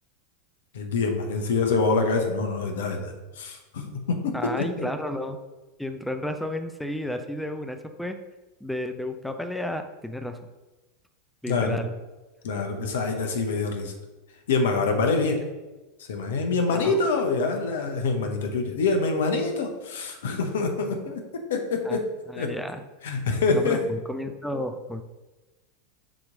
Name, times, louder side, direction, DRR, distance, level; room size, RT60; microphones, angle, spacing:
voice 1, 0.7-4.9 11.5-11.8 12.4-13.9 14.5-15.4 16.1-21.2 21.5-22.0 22.3-22.5 23.0-23.8, left 4 dB, 70° left, 4 dB, 0.9 m, -25 dB
voice 2, 4.3-5.4 5.8-8.2 8.6-10.4 11.4-11.9 16.7-17.1 21.8-22.0 22.3-22.8 23.5-25.0, left 1 dB, 5° left, 7 dB, 0.5 m, -32 dB
6.1 x 3.1 x 5.1 m, 1.1 s
figure-of-eight pair, 90°, 0 cm